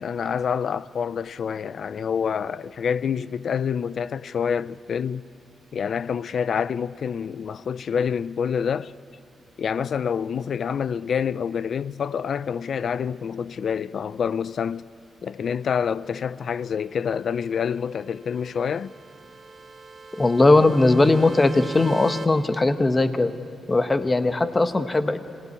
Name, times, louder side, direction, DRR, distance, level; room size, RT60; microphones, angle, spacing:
voice 1, 0.0-5.3 5.7-8.9 9.6-14.9 15.2-18.9, left 7 dB, 60° left, 0.5 m, -27 dB
sound 1, 17.3-22.3, right 4 dB, 35° right, 2.4 m, -41 dB
voice 2, 20.2-23.3 23.7-25.2, left 2 dB, 20° left, 1.1 m, -19 dB
26.0 x 18.0 x 9.8 m
wide cardioid pair, 130°, 0 cm